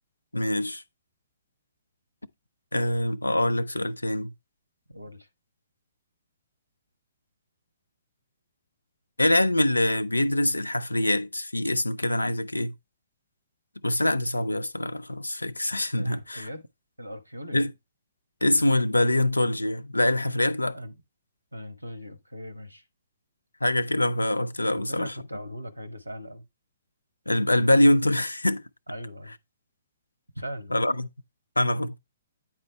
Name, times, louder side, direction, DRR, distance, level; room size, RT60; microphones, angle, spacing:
voice 1, 0.3-0.8 2.7-4.3 9.2-12.7 13.8-16.5 17.5-17.7 18.4-20.8 23.6-25.1 27.3-28.6 30.7-31.1 31.6-32.0, left 1 dB, 80° left, 0.4 m, -24 dB
voice 2, 4.9-5.3 16.0-16.7 17.0-17.6 20.7-20.9 21.5-22.8 24.7-26.4 28.9-29.3 30.3-30.7, equal, 85° right, 1.0 m, -39 dB
9.1 x 4.3 x 3.2 m
figure-of-eight pair, 125°, 0 cm